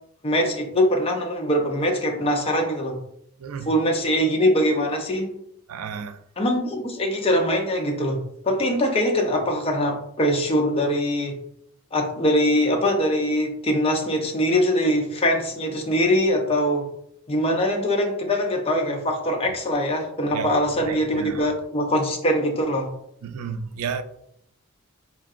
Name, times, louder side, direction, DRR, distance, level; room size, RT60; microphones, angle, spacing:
voice 1, 0.2-3.0 3.7-5.3 6.4-11.4 11.9-16.9 17.3-22.9, equal, 25° left, 0.5 m, -22 dB
voice 2, 3.4-3.7 5.7-6.2 19.4-19.5 20.3-21.5 23.2-24.0, right 6 dB, 90° right, 0.4 m, -32 dB
4.3 x 2.8 x 2.4 m
head